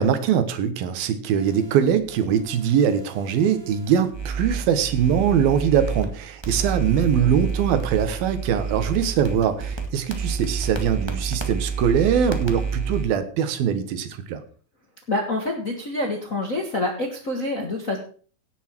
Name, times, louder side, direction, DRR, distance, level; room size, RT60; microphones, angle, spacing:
voice 1, 0.0-14.4, right 8 dB, 80° right, 10 dB, 3.1 m, -22 dB
sound 1, 1.4-6.1 6.4-13.0, right 5 dB, 45° right, 0.3 m, -30 dB
voice 2, 15.1-18.0, left 2 dB, 45° left, 2 dB, 1.0 m, -26 dB
17.0 x 8.2 x 4.6 m, 0.42 s
omnidirectional pair, 4.2 m